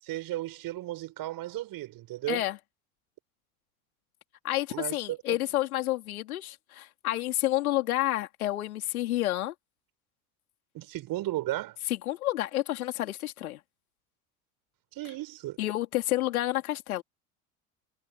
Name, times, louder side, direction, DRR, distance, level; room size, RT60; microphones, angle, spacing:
voice 1, 0.0-2.5 4.7-5.4 10.7-11.8 14.9-15.6, right 16 dB, 55° right, 7.1 m, -35 dB
voice 2, 2.3-2.6 4.4-9.5 11.9-13.6 15.6-17.0, left 15 dB, 85° left, 3.9 m, -29 dB
hypercardioid pair, 85°, 42 cm